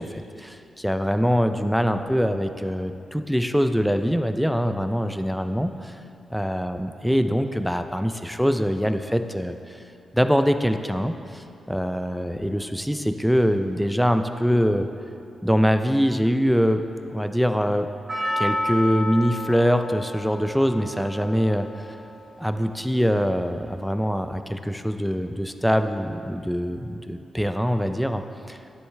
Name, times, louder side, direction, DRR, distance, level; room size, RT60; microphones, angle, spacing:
voice 1, 0.0-5.9 6.3-9.6 10.1-14.9 15.4-16.8 17.1-17.9 18.4-21.9 22.4-28.6, equal, ahead, 8 dB, 0.4 m, -23 dB
Percussion, 18.1-22.5 22.7-22.8, left 1 dB, 35° right, 2.1 m, -31 dB
10.0 x 7.8 x 3.3 m, 2.6 s
wide cardioid pair, 125°, 0 cm